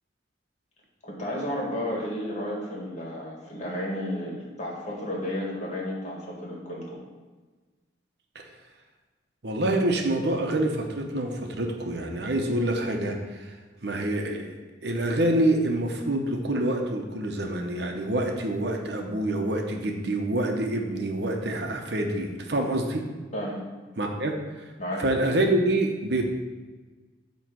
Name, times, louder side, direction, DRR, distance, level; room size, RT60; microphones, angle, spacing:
voice 1, 1.0-7.0 23.3-23.6 24.8-25.0, left 1 dB, 40° left, -3 dB, 2.0 m, -32 dB
voice 2, 9.4-13.5 13.8-23.0 24.0-24.3 25.0-26.2, right 1 dB, 65° right, 2 dB, 0.9 m, -26 dB
8.9 x 3.2 x 6.2 m, 1.3 s
head